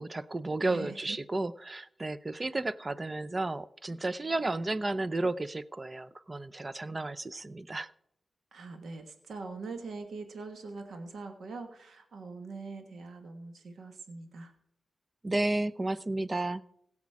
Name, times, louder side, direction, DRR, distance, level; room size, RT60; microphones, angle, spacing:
voice 1, 0.0-7.9 15.2-16.6, right 2 dB, 35° right, 16 dB, 0.7 m, -32 dB
voice 2, 0.6-1.2 2.3-2.5 8.5-14.5, right 3 dB, 80° right, 6 dB, 1.4 m, -43 dB
16.5 x 7.3 x 4.8 m, 0.72 s
cardioid pair, 55°, 0 cm